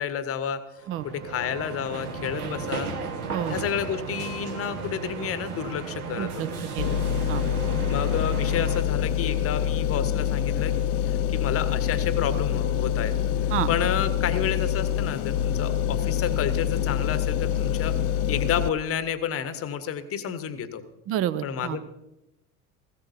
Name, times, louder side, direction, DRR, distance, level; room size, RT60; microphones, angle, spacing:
voice 1, 0.0-2.9 3.5-6.6 7.9-10.8 11.0-17.9 18.3-20.8 21.4-21.8, left 8 dB, 30° left, 12 dB, 1.1 m, -30 dB
sound 1, 0.8-8.8, right 4 dB, 70° right, 1.6 m, -34 dB
voice 2, 6.2-6.5 6.8-7.4 13.5-13.7 21.1-21.8, right 11 dB, 30° right, 16 dB, 0.6 m, -29 dB
sound 2, 6.8-18.7, left 9 dB, 55° left, 0.6 m, -26 dB
18.0 x 15.5 x 2.7 m, 0.93 s
figure-of-eight pair, 70°, 47 cm